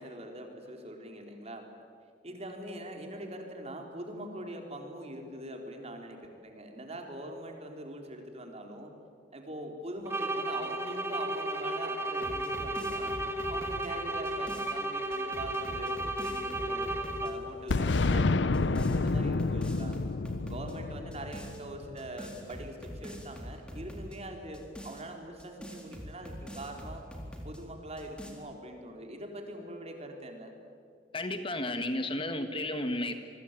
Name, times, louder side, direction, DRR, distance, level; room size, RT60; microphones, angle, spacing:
voice 1, 0.0-1.7 2.2-8.9 9.3-13.1 13.5-19.9 20.4-27.0 27.4-30.5, right 1 dB, 35° right, 3 dB, 4.1 m, -43 dB
sound 1, 10.1-17.6, right 1 dB, 15° right, 1.6 m, -34 dB
sound 2, 12.1-14.7 15.1-17.3 17.7-18.2 18.5-20.7 21.1-21.6 22.0-24.2 24.5-27.6 28.0-28.3, equal, 5° left, 4.1 m, -44 dB
Boom, 17.7-22.4, left 3 dB, 85° left, 0.7 m, -29 dB
voice 2, 31.1-33.1, left 1 dB, 30° left, 8 dB, 1.6 m, -32 dB
27.0 x 23.5 x 9.2 m, 2.4 s
head